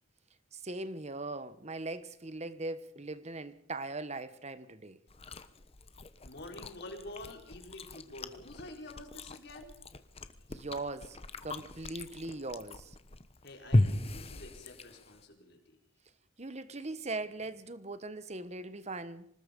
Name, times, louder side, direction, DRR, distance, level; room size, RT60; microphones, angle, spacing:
voice 1, 0.5-5.0 10.5-11.2 11.4-13.0 16.4-19.3, right 2 dB, 35° right, 1.1 m, -40 dB
Chewing mastication, 5.1-15.2, left 1 dB, 30° left, 1.1 m, -36 dB
voice 2, 6.2-9.8 13.4-15.8, left 1 dB, 55° left, 4.6 m, -48 dB
25.5 x 20.0 x 5.3 m
head